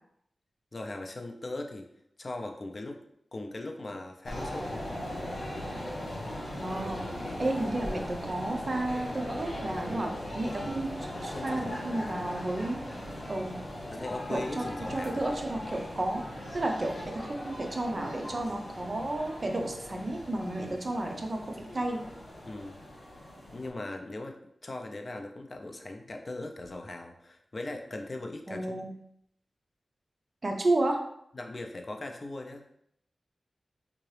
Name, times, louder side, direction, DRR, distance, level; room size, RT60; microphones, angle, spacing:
voice 1, 0.7-1.9 2.2-3.0 3.3-4.9 7.2-7.5 9.9-10.2 11.3-12.1 13.9-15.3 20.6-20.8 22.5-22.8 23.5-28.7 31.3-32.7, left 2 dB, 40° left, 3 dB, 0.5 m, -39 dB
sound 1, 4.2-23.7, left 1 dB, 75° left, 1.2 m, -39 dB
voice 2, 6.6-7.0 7.4-10.1 10.4-12.9 13.3-13.6 14.3-16.3 16.5-22.1 28.5-28.9 30.4-31.0, right 2 dB, 40° right, 2 dB, 0.6 m, -32 dB
3.6 x 2.9 x 3.2 m, 0.73 s
wide cardioid pair, 100°, 0 cm